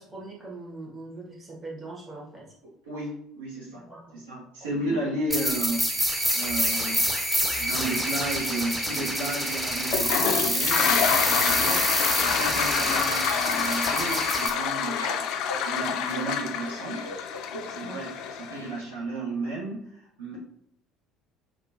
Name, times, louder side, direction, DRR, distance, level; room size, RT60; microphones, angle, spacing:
voice 1, 0.0-2.5 3.9-4.2 4.7-5.0 17.8-18.0 20.3-20.4, right 2 dB, 25° right, -3 dB, 1.5 m, -42 dB
voice 2, 2.9-3.9 4.1-7.1 7.6-15.3 15.7-17.1 17.5-20.4, right 2 dB, 70° right, -4 dB, 1.0 m, -33 dB
sound 1, 5.3-14.5, equal, 5° right, 0.7 m, -27 dB
Toilet flush, 9.8-18.7, left 8 dB, 55° left, 0.4 m, -28 dB
Laughter, 9.8-19.0, equal, 90° right, 0.5 m, -39 dB
6.3 x 2.4 x 2.6 m, 0.74 s
figure-of-eight pair, 60°, 0 cm